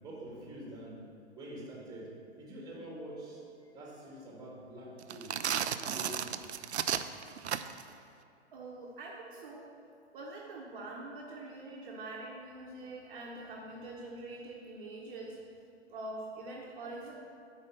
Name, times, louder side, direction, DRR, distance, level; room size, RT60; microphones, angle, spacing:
voice 1, 0.0-1.0 1.4-3.4 3.7-5.4 5.6-6.4, right 1 dB, 10° right, -3 dB, 2.0 m, -46 dB
sound 1, 5.0-7.9, right 8 dB, 70° right, 0.5 m, -34 dB
voice 2, 8.5-9.7 10.1-15.4 15.9-17.1, right 2 dB, 45° right, -2 dB, 1.1 m, -44 dB
8.9 x 5.0 x 6.4 m, 2.6 s
figure-of-eight pair, 115°, 35 cm